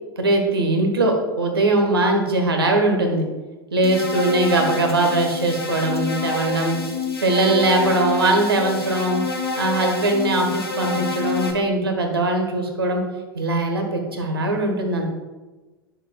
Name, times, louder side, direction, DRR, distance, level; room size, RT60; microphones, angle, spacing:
voice 1, 0.2-3.2 3.7-6.8 7.2-9.2 9.6-13.0 13.3-15.0, right 2 dB, 75° right, 3 dB, 1.3 m, -21 dB
sound 1, 3.8-11.5, left 3 dB, 80° left, 1.1 m, -28 dB
10.0 x 6.5 x 2.3 m, 1.2 s
figure-of-eight pair, 90°, 13 cm